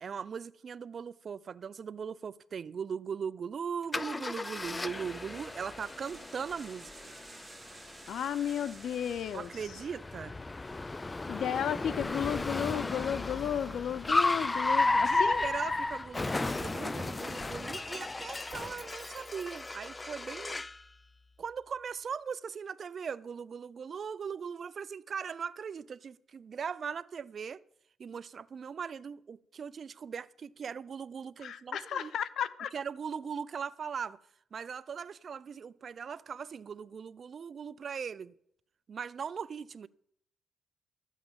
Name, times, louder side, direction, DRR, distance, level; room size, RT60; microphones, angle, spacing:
voice 1, 0.0-6.9 9.3-10.3 14.9-20.7 21.4-27.6 28.0-32.1 32.7-34.2 34.5-38.3 38.9-39.9, right 6 dB, 50° right, 0.4 m, -39 dB
Car, 3.9-20.8, left 2 dB, 20° left, 0.4 m, -34 dB
sound 1, 4.7-10.3, right 4 dB, 25° right, 1.2 m, -54 dB
voice 2, 8.1-9.5 11.3-15.4 31.4-32.7, left 9 dB, 65° left, 0.7 m, -33 dB
13.0 x 8.2 x 7.4 m
cardioid pair, 90°, 0 cm